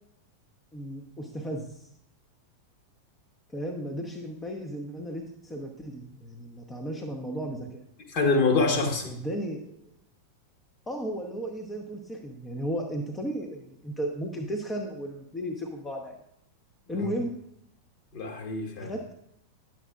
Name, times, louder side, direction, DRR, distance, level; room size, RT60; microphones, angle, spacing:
voice 1, 0.7-1.8 3.5-7.8 9.1-9.8 10.9-16.2 16.9-17.4 18.8-19.1, equal, 15° left, 2 dB, 0.8 m, -34 dB
voice 2, 8.1-9.2 16.9-17.1 18.1-18.9, left 3 dB, 45° left, 3 dB, 1.3 m, -26 dB
9.9 x 7.3 x 2.4 m, 0.76 s
figure-of-eight pair, 90°, 0 cm